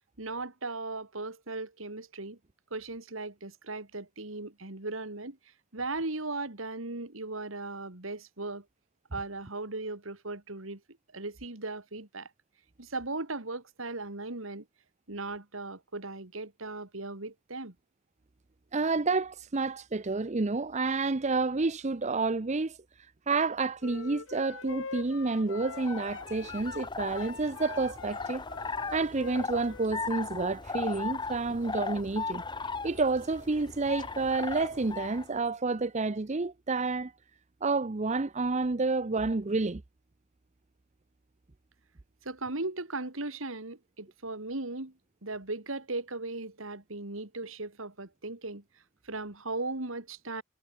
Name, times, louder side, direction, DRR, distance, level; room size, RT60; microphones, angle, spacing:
voice 1, 0.2-2.4 2.7-5.4 5.7-8.6 9.1-10.8 11.1-12.3 12.8-14.6 15.1-17.7 42.2-44.9 45.2-48.6 49.0-50.4, right 2 dB, 80° right, 2.8 m, -37 dB
voice 2, 18.7-22.8 23.3-28.4 28.9-32.4 32.8-37.1 37.6-39.8, right 3 dB, 35° right, 0.7 m, -29 dB
sound 1, 23.8-30.3, left 5 dB, 75° left, 1.1 m, -44 dB
sound 2, 25.5-35.3, left 4 dB, 20° left, 1.2 m, -38 dB
head